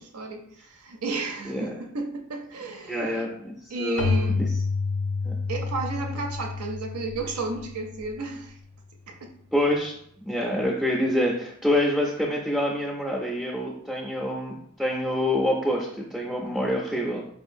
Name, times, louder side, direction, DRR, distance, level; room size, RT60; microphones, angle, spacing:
voice 1, 0.0-3.3 3.7-4.4 5.5-8.6 9.1-9.2, right 3 dB, 80° right, 4 dB, 0.6 m, -33 dB
voice 2, 1.5-1.8 2.9-4.5 5.3-5.4 9.5-17.3, left 1 dB, ahead, -3 dB, 0.4 m, -27 dB
Keyboard (musical), 4.0-8.5, left 4 dB, 65° left, 0.4 m, -29 dB
4.6 x 2.5 x 2.5 m, 0.67 s
head